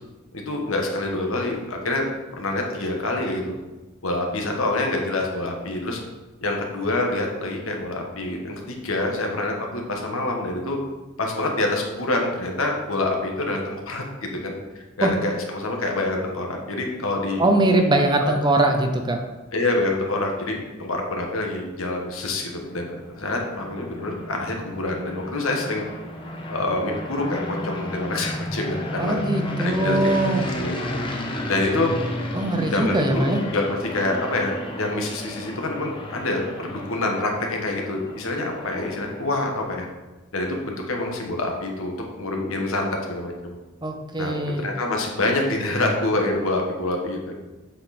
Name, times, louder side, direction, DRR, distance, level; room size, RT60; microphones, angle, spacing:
voice 1, 0.3-2.1 2.4-3.6 4.0-6.0 6.4-10.8 11.2-17.4 18.2-18.3 19.5-25.8 26.5-29.2 29.6-30.0 30.6-31.0 31.5-31.9 32.7-33.6 33.9-39.9 40.3-43.6 44.2-47.3, left 2 dB, 70° left, 1 dB, 1.5 m, -26 dB
voice 2, 17.4-19.2 29.0-30.5 32.3-33.4 43.8-44.7, right 2 dB, 20° right, 4 dB, 0.7 m, -21 dB
sound 1, 22.3-39.5, left 1 dB, 25° left, 0.9 m, -33 dB
7.8 x 6.2 x 4.3 m, 1.1 s
head